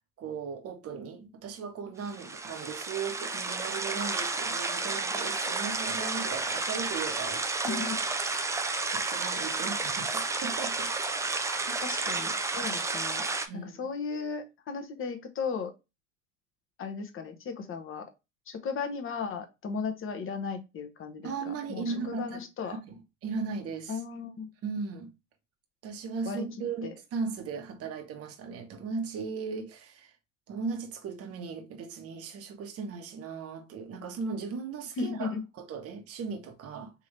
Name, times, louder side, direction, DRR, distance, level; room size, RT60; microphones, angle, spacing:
voice 1, 0.2-8.0 8.9-10.9 11.6-11.8 13.5-13.8 21.2-23.0 23.2-24.0 24.6-25.1 25.8-30.1 30.5-36.9, right 5 dB, 35° right, 1.0 m, -37 dB
sound 1, 2.1-13.5, right 3 dB, 10° right, 0.3 m, -31 dB
voice 2, 7.6-8.0 11.8-13.3 13.5-15.7 16.8-18.1 18.5-22.8 23.9-24.5 26.3-26.4 26.8-26.9 35.0-35.4, left 5 dB, 30° left, 1.0 m, -36 dB
3.6 x 2.9 x 3.1 m
hypercardioid pair, 95°, 40 cm